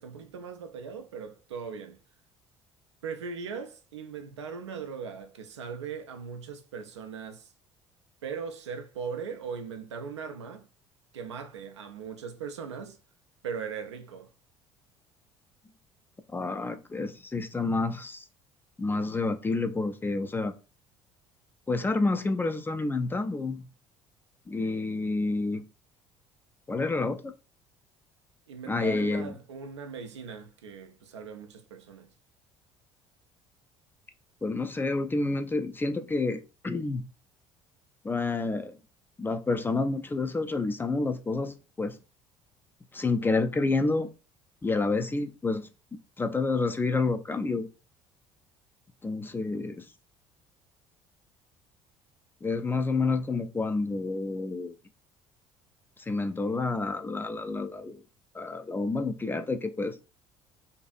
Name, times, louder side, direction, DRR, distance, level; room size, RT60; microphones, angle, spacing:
voice 1, 0.0-2.0 3.0-7.5 8.2-10.7 11.1-13.0 13.4-14.3 28.5-32.1, right 6 dB, 85° right, 0.4 m, -39 dB
voice 2, 16.3-18.2 18.8-20.5 21.7-23.6 24.5-25.6 26.7-27.3 28.7-29.3 34.4-37.0 38.0-38.8 39.2-42.0 42.9-44.1 44.6-45.7 46.2-47.7 49.0-49.9 52.4-54.7 56.1-58.0 58.3-60.0, left 3 dB, 15° left, 0.3 m, -29 dB
2.6 x 2.4 x 2.3 m
hypercardioid pair, 60°, 15 cm